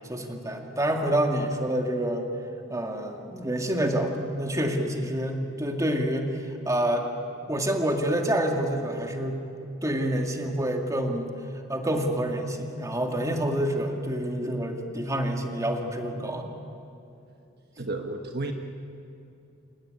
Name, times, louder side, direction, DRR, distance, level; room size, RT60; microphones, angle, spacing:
voice 1, 0.1-2.3 2.7-6.3 6.7-7.1 7.5-9.4 9.8-11.3 11.7-16.6, right 1 dB, 15° right, 3 dB, 2.2 m, -27 dB
voice 2, 17.8-18.5, right 2 dB, 50° right, 4 dB, 1.4 m, -32 dB
29.5 x 17.5 x 9.7 m, 2.8 s
head